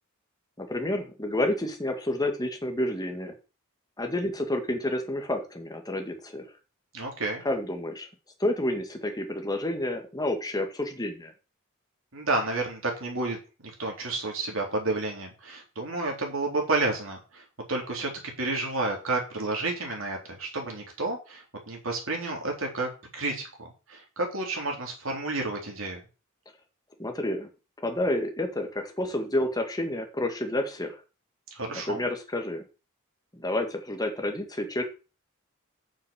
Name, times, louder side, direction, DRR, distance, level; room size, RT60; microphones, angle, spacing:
voice 1, 0.6-3.3 4.0-6.5 7.4-8.1 8.4-11.3 27.0-27.5 27.8-31.0 31.9-32.6 33.3-34.8, left 1 dB, 20° left, 5 dB, 2.0 m, -29 dB
voice 2, 6.9-7.4 12.1-13.4 13.6-17.4 17.7-18.1 18.4-23.5 23.9-26.0 31.5-32.0, right 2 dB, 65° right, 1 dB, 3.8 m, -30 dB
7.9 x 6.8 x 7.1 m, 0.33 s
head